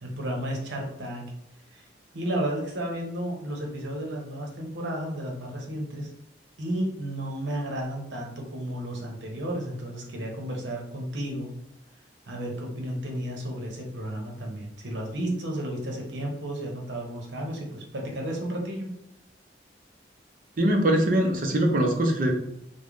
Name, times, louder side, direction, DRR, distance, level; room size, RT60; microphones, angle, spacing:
voice 1, 0.0-1.3 1.7-1.9 2.1-6.1 6.6-11.5 12.3-18.9, right 1 dB, 80° right, 0 dB, 0.8 m, -32 dB
voice 2, 20.6-22.3, right 1 dB, 50° right, 2 dB, 0.6 m, -22 dB
3.4 x 2.1 x 3.5 m, 0.79 s
head